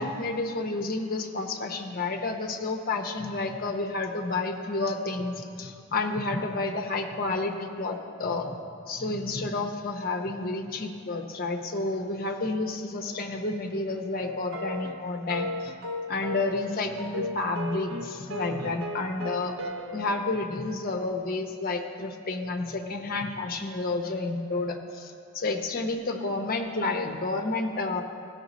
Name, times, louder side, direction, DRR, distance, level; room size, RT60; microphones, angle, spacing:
voice 1, 0.0-15.7 16.1-19.5 19.9-28.0, left 3 dB, 40° left, 3 dB, 0.7 m, -30 dB
sound 1, 14.2-20.3, left 1 dB, 65° right, 0.8 m, -36 dB
16.0 x 5.9 x 4.1 m, 2.4 s
head